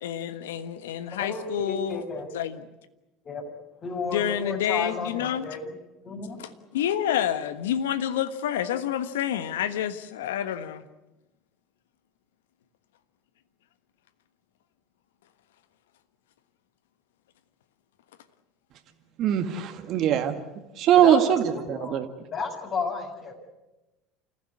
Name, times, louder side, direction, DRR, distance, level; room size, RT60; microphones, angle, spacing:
voice 1, 0.0-2.0 2.3-2.6 4.1-5.5 6.4-10.8, left 10 dB, 75° left, 12 dB, 1.3 m, -28 dB
voice 2, 1.1-2.3 3.2-3.4 3.8-5.7 6.0-6.4 21.0-22.0 22.3-23.3, left 4 dB, 45° left, 2 dB, 6.7 m, -32 dB
voice 3, 19.2-20.3 20.8-21.4 21.7-22.0, right 10 dB, 55° right, 7 dB, 1.9 m, -21 dB
28.5 x 15.0 x 9.7 m, 1.0 s
hypercardioid pair, 70°, 0 cm